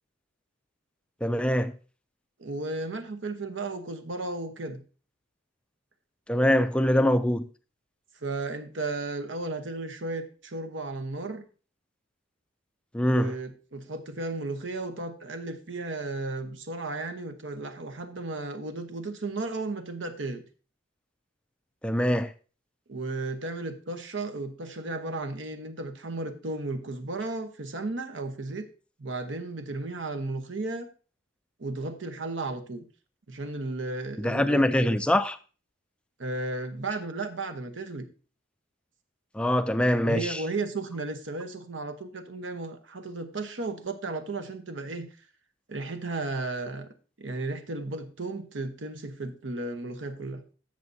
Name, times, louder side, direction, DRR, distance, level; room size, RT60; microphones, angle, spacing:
voice 1, 1.2-1.7 6.3-7.4 12.9-13.3 21.8-22.3 34.2-35.4 39.3-40.4, left 1 dB, 5° left, 0.3 m, -23 dB
voice 2, 2.4-4.8 8.2-11.5 13.1-20.4 22.9-28.7 29.0-30.9 31.6-32.8 33.3-35.0 36.2-38.1 40.0-45.1 45.7-46.9 47.2-50.4, right 2 dB, 70° right, 1.0 m, -34 dB
13.5 x 6.4 x 2.7 m
head